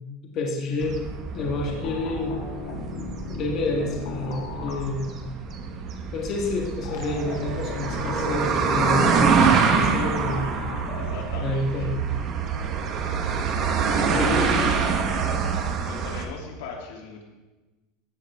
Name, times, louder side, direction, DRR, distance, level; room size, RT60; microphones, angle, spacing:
voice 1, 0.3-1.0 1.3-2.4 3.4-5.2 6.1-9.4 9.6-10.5 11.3-11.9 14.0-14.8 15.1-15.2, left 2 dB, 30° left, 0 dB, 1.5 m, -28 dB
sound 1, 0.8-16.3, right 5 dB, 30° right, 1.2 m, -26 dB
sound 2, 1.4-5.2 6.8-11.2, left 5 dB, 65° left, 2.2 m, -36 dB
sound 3, 6.0-15.9, right 10 dB, 85° right, 0.7 m, -34 dB
voice 2, 9.4-10.6 10.9-11.9 14.0-15.0 15.8-17.2, left 4 dB, 85° left, 0 dB, 2.8 m, -38 dB
15.0 x 11.0 x 3.5 m, 1.1 s
supercardioid pair, 180°, 0 cm